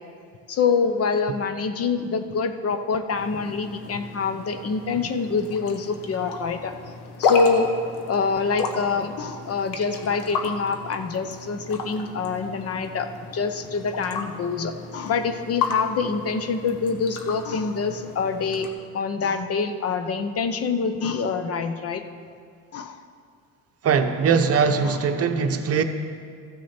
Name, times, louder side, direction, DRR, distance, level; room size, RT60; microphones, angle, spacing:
voice 1, 0.5-6.7 7.2-7.7 8.1-18.7 18.9-22.0 22.7-23.0 24.8-25.0, left 5 dB, 45° left, 8 dB, 0.7 m, -25 dB
sound 1, 3.1-18.7, left 4 dB, 90° left, 1.0 m, -33 dB
voice 2, 23.8-25.8, right 6 dB, 45° right, 7 dB, 0.7 m, -21 dB
14.0 x 6.3 x 4.3 m, 2.3 s
supercardioid pair, 85°, 34 cm